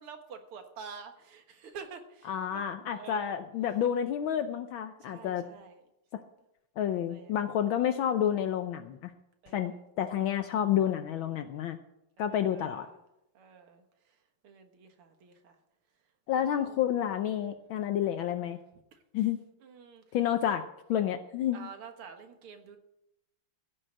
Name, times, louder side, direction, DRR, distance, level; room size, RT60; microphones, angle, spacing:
voice 1, 0.0-3.4 5.0-5.8 7.1-7.6 9.4-9.8 12.2-13.0 13.3-14.2 14.4-15.6 16.3-16.8 18.9-19.2 19.6-20.0 20.4-20.5 21.5-22.8, right 6 dB, 80° right, 6 dB, 2.4 m, -49 dB
voice 2, 2.3-5.4 6.8-9.1 9.5-11.8 12.2-12.9 16.3-18.6 19.1-19.4 20.1-20.6 20.9-21.7, left 10 dB, 75° left, 8 dB, 1.4 m, -29 dB
15.5 x 6.5 x 7.7 m, 0.86 s
omnidirectional pair, 2.4 m